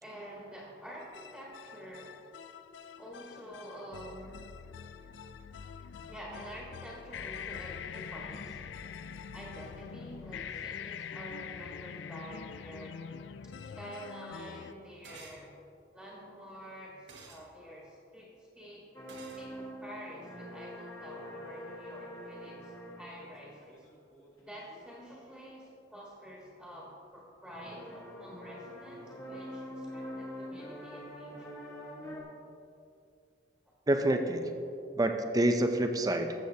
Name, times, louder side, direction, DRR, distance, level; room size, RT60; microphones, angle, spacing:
voice 1, 0.0-2.3 3.0-4.4 6.1-8.6 9.3-13.0 13.4-15.5 15.9-18.8 19.4-23.8 24.5-31.6, equal, ahead, -5 dB, 1.5 m, -48 dB
sound 1, 1.0-14.7, left 7 dB, 80° left, 0.4 m, -44 dB
sound 2, 15.0-15.4 17.1-17.4 19.1-19.4, right 4 dB, 85° right, 1.4 m, -50 dB
sound 3, 18.9-24.8 27.5-32.2, equal, 20° left, 1.4 m, -45 dB
voice 2, 33.9-34.5 34.9-36.3, right 1 dB, 20° right, 5 dB, 0.5 m, -27 dB
13.5 x 8.0 x 2.8 m, 2.6 s
head